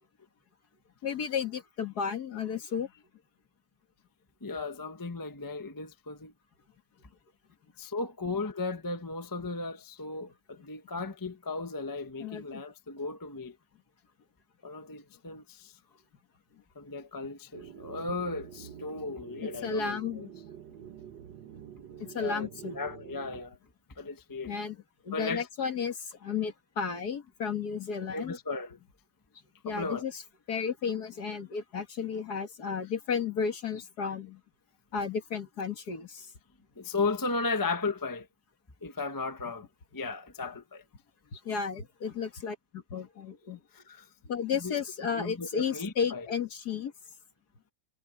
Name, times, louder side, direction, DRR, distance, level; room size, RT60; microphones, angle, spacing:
voice 1, 1.0-2.9 10.6-10.7 12.2-12.6 19.4-20.3 22.0-22.8 24.5-24.8 25.0-28.4 29.6-30.2 30.5-34.4 34.9-36.3 41.3-43.6 44.2-46.9, left 6 dB, 50° left, 2.2 m, -33 dB
voice 2, 4.4-6.3 7.8-13.5 14.6-15.7 16.7-20.3 22.1-22.5 22.7-23.6 24.0-24.5 25.1-25.5 28.1-28.8 29.7-30.0 36.8-38.3 38.8-39.7 39.9-40.8 43.7-44.1 44.6-44.7 45.1-46.3, left 3 dB, 15° left, 0.7 m, -35 dB
sound 1, 17.5-23.4, right 9 dB, 65° right, 1.5 m, -47 dB
omnidirectional pair, 2.2 m